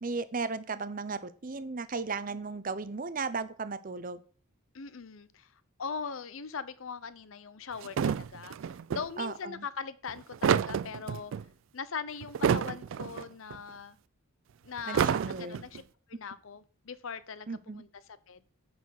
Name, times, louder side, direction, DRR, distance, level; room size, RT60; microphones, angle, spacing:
voice 1, 0.0-4.2 9.2-9.6 14.9-15.6 17.5-17.8, right 4 dB, 40° right, 0.7 m, -35 dB
voice 2, 4.7-5.5 5.8-8.6 8.9-11.3 11.7-14.0 14.6-15.8 16.1-18.4, left 6 dB, 70° left, 0.7 m, -40 dB
sound 1, 7.8-9.1 10.1-11.4 12.2-13.3 13.5-13.6 14.8-15.8, right 7 dB, 60° right, 0.3 m, -29 dB
9.4 x 4.3 x 6.4 m
head